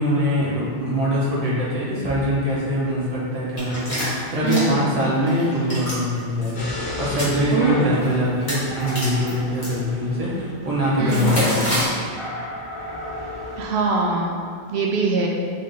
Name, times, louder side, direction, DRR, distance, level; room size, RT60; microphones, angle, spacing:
voice 1, 0.0-6.7 7.0-11.7, equal, 35° right, -7 dB, 1.1 m, -23 dB
sound 1, 3.6-4.9 5.3-6.0 6.3-6.5 7.0-7.3 8.0-8.1 8.4-9.7 11.1-11.8, equal, 30° left, 1.7 m, -26 dB
voice 2, 4.4-4.9 7.5-7.9 11.0-11.4 13.6-14.4 14.7-15.3, right 4 dB, 90° right, 0 dB, 0.8 m, -22 dB
sound 2, 6.5-13.7, left 1 dB, 65° left, 1.2 m, -33 dB
3.8 x 3.7 x 3.7 m, 2.1 s
omnidirectional pair, 1.1 m